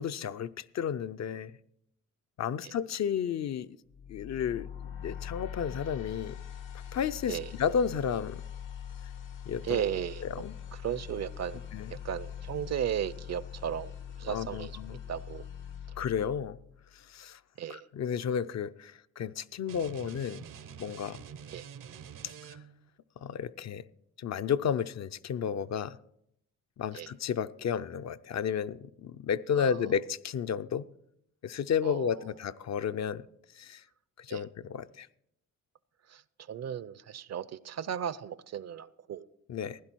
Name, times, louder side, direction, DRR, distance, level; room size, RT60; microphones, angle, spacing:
voice 1, 0.0-1.5 2.4-3.7 4.1-4.7 5.0-6.4 6.9-8.4 9.5-9.8 10.2-10.5 11.7-11.9 14.3-15.0 16.0-16.6 16.9-17.4 17.7-20.4 20.8-21.2 23.2-23.8 24.2-26.0 26.8-30.8 31.4-33.2 33.5-33.8 34.2-35.1 39.5-39.8, left 7 dB, 55° left, 12 dB, 0.5 m, -32 dB
sound 1, 3.9-17.0, left 8 dB, 85° left, 1.5 m, -43 dB
voice 2, 9.6-10.3 10.7-11.6 11.9-15.4 17.6-17.9 21.5-21.6 26.9-27.1 29.6-29.8 31.8-32.1 34.3-34.4 36.1-36.2 36.5-39.3, right 9 dB, 55° right, 18 dB, 0.6 m, -35 dB
sound 2, 19.7-22.9, right 8 dB, 80° right, 0.9 m, -47 dB
16.0 x 10.5 x 4.5 m, 0.74 s
cardioid pair, 75°, 31 cm